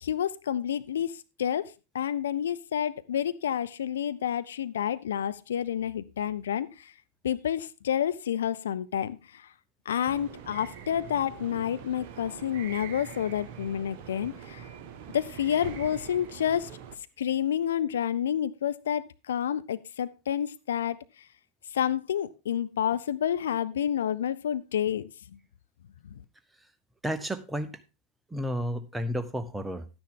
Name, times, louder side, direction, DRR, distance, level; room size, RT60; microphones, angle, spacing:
voice 1, 0.0-6.9 7.2-9.5 9.9-14.7 15.1-16.7 17.2-21.0 21.7-25.4 26.0-26.1, left 9 dB, 65° left, 0.5 m, -29 dB
sound 1, 10.1-16.9, right 8 dB, 45° right, 1.2 m, -44 dB
voice 2, 27.0-27.8 28.3-29.9, equal, 5° right, 0.9 m, -32 dB
11.5 x 9.7 x 3.7 m
figure-of-eight pair, 90°, 0 cm